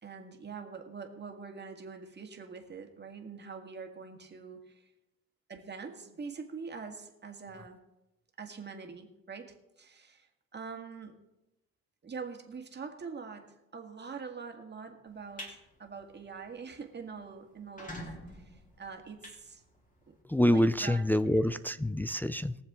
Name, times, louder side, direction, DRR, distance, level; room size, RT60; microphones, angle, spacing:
voice 1, 0.0-4.9 5.5-7.8 8.4-11.2 12.0-18.0 18.3-19.6 20.1-20.2 20.5-21.5, right 5 dB, 35° right, 4 dB, 1.9 m, -44 dB
sound 1, 15.1-15.5 16.0-16.2 16.6-16.7 16.9-17.0 17.5-20.1, equal, 25° left, 3.2 m, -46 dB
voice 2, 20.2-22.6, left 1 dB, 5° left, 11 dB, 0.5 m, -26 dB
21.5 x 7.2 x 3.7 m, 0.94 s
cardioid pair, 90°, 30 cm